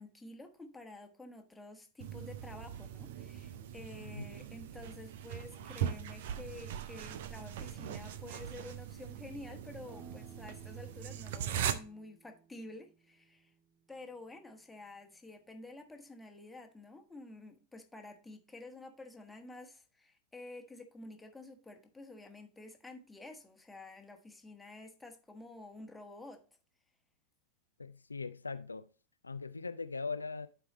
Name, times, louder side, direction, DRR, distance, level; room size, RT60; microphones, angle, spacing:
voice 1, 0.0-13.5 13.9-26.4, left 2 dB, 5° left, 1.3 m, -50 dB
sound 1, 2.0-11.7, right 9 dB, 55° right, 0.6 m, -40 dB
sound 2, 9.8-15.2, right 4 dB, 20° right, 1.9 m, -60 dB
voice 2, 27.8-28.9 29.2-30.5, left 4 dB, 80° left, 0.3 m, -40 dB
11.0 x 4.7 x 3.0 m
figure-of-eight pair, 90°, 0 cm